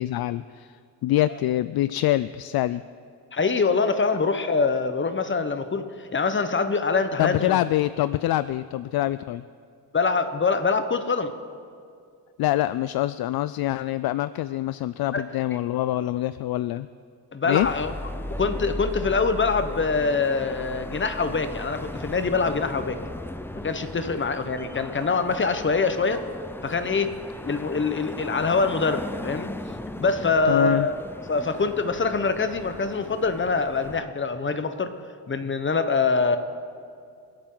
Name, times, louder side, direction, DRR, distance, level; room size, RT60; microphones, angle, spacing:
voice 1, 0.0-2.8 7.2-9.4 12.4-16.9 17.4-17.7 30.4-30.9, left 14 dB, 55° left, 16 dB, 0.5 m, -25 dB
voice 2, 3.3-7.6 9.9-11.3 15.1-15.2 17.3-17.9 18.4-23.0 23.6-26.2 26.6-27.2 27.4-29.5 30.0-31.0 31.3-34.9 35.3-36.4, left 4 dB, 25° left, 9 dB, 1.2 m, -24 dB
sound 1, 17.6-34.0, left 1 dB, 5° left, 0.7 m, -37 dB
26.0 x 8.8 x 4.0 m, 2.4 s
supercardioid pair, 75°, 44 cm